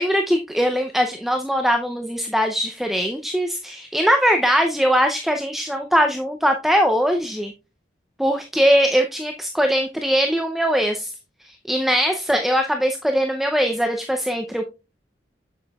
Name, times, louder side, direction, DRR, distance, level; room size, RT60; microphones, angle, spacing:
voice 1, 0.0-7.5 8.2-11.1 11.4-14.7, equal, ahead, 4 dB, 0.5 m, -21 dB
7.7 x 7.1 x 2.3 m, 0.29 s
head